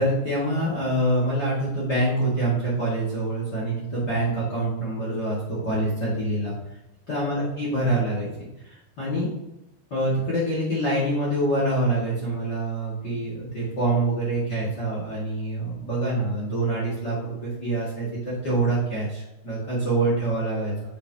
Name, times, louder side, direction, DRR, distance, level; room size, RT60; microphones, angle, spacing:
voice 1, 0.0-5.4 5.6-6.5 7.1-8.3 8.6-9.3 9.9-20.7, right 1 dB, 40° left, -7 dB, 1.5 m, -25 dB
7.9 x 7.4 x 2.9 m, 0.94 s
omnidirectional pair, 5.1 m